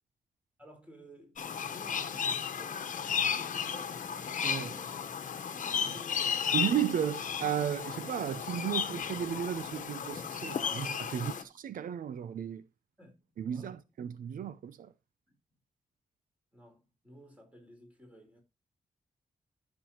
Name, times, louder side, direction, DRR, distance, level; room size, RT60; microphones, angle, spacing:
voice 1, 0.6-4.1 4.5-5.0 5.5-6.4 11.1-11.5 13.0-13.9 16.5-18.4, equal, 10° right, 4.4 m, -55 dB
sound 1, 1.4-11.4, left 7 dB, 70° left, 1.1 m, -34 dB
voice 2, 6.5-11.3 11.6-12.6 13.4-14.9, right 9 dB, 90° right, 0.7 m, -34 dB
14.0 x 6.9 x 3.0 m
wide cardioid pair, 130°, 14 cm